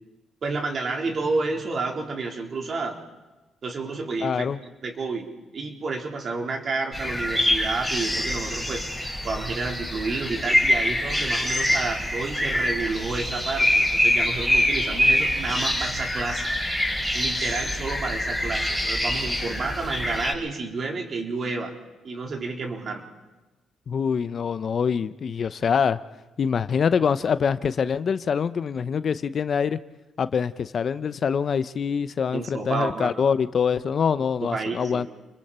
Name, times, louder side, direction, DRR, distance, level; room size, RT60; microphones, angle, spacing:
voice 1, 0.4-3.0 3.6-4.5 4.8-5.3 5.5-8.8 9.2-16.5 17.1-21.7 22.0-23.0 32.3-33.2 34.4-35.1, right 3 dB, 50° right, 2 dB, 3.9 m, -30 dB
voice 2, 4.2-4.6 23.9-26.0 26.4-29.8 30.2-35.1, left 6 dB, 50° left, 14 dB, 0.7 m, -24 dB
sound 1, 6.9-20.3, left 1 dB, 5° right, 6.0 m, -25 dB
29.5 x 22.0 x 4.4 m, 1.2 s
cardioid pair, 90°, 0 cm